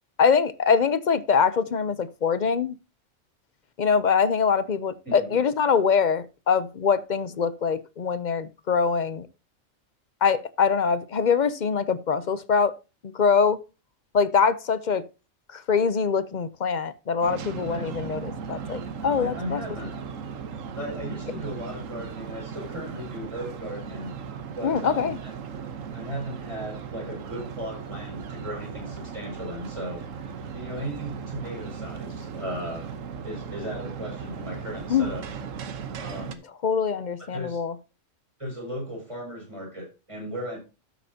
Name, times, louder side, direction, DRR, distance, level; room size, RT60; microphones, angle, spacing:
voice 1, 0.2-2.8 3.8-9.3 10.2-12.7 13.0-13.6 14.1-15.0 15.5-19.6 24.6-25.2 34.9-35.1 36.6-37.8, left 6 dB, 45° left, 0.6 m, -23 dB
voice 2, 5.0-5.4 17.7-17.9 19.2-19.9 20.8-24.1 24.6-25.3 25.9-30.0 30.5-32.8 33.2-35.2 36.0-36.4 37.3-37.6 38.4-40.6, equal, 25° right, 5.9 m, -36 dB
sound 1, 17.2-36.4, right 6 dB, 80° right, 1.4 m, -37 dB
12.5 x 8.7 x 2.8 m
omnidirectional pair, 1.3 m